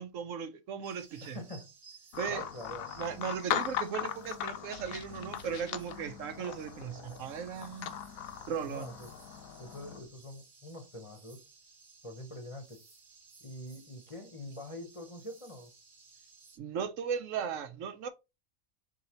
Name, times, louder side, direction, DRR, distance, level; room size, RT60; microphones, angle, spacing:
voice 1, 0.0-1.4 2.2-2.5 3.0-7.9 8.5-8.9 16.6-18.1, right 7 dB, 70° right, 0.9 m, -37 dB
sound 1, 0.8-16.6, right 4 dB, 40° right, 1.1 m, -58 dB
voice 2, 1.2-1.7 2.3-2.9 8.6-9.1 9.6-11.4 12.0-12.8 13.4-15.7, left 1 dB, 30° left, 0.8 m, -45 dB
sound 2, 2.1-10.0, left 10 dB, 75° left, 1.0 m, -39 dB
4.7 x 2.7 x 4.2 m
omnidirectional pair, 1.5 m